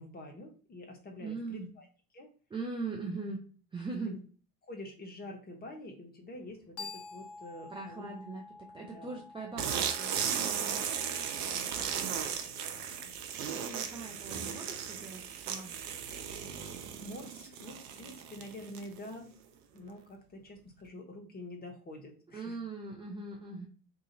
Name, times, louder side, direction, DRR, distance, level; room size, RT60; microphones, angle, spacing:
voice 1, 0.0-1.9 2.1-2.3 4.1-4.2 4.6-8.1 8.9-9.2 10.7-13.1 16.5-19.3 19.7-22.6, left 1 dB, 20° left, 2 dB, 1.0 m, -47 dB
voice 2, 1.2-1.7 2.5-3.4 3.7-4.2 7.7-10.6 13.5-15.7 22.3-23.7, right 3 dB, 10° right, -1 dB, 0.5 m, -40 dB
sound 1, 6.3-11.4, left 4 dB, 55° left, 0.9 m, -49 dB
sound 2, 9.6-19.1, right 8 dB, 55° right, 0.7 m, -36 dB
2.8 x 2.5 x 3.8 m, 0.40 s
figure-of-eight pair, 65°, 48 cm